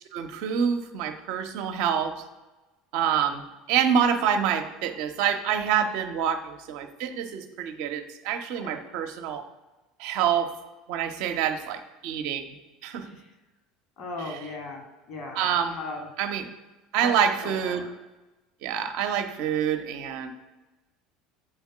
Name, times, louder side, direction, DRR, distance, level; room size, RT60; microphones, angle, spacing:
voice 1, 0.1-2.1 2.9-9.4 10.0-10.5 10.9-12.5 12.8-13.1 15.4-15.8 16.2-16.5 16.9-17.8 18.6-20.3, right 8 dB, 60° right, 7 dB, 0.7 m, -26 dB
voice 2, 14.0-15.4 15.7-16.1 17.0-17.2 17.4-17.9, left 2 dB, 55° left, 3 dB, 2.0 m, -38 dB
7.8 x 3.6 x 6.0 m, 1.1 s
figure-of-eight pair, 70°, 0 cm